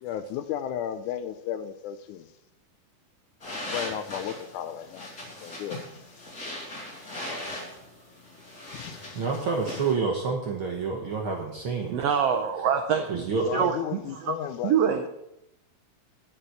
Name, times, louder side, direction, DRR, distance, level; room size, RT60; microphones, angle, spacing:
voice 1, 0.0-2.3 3.5-6.0 6.5-6.8 7.5-7.6 8.7-9.3 13.4-14.7, left 10 dB, 80° left, 11 dB, 1.9 m, -35 dB
sound 1, 3.4-9.9, left 1 dB, 30° left, 3.2 m, -39 dB
voice 2, 9.1-12.0 13.1-13.6, right 5 dB, 65° right, 1 dB, 1.3 m, -28 dB
voice 3, 11.9-13.1 13.5-14.3 14.6-15.1, right 7 dB, 90° right, 6 dB, 1.4 m, -25 dB
11.0 x 5.7 x 7.7 m, 0.85 s
omnidirectional pair, 3.8 m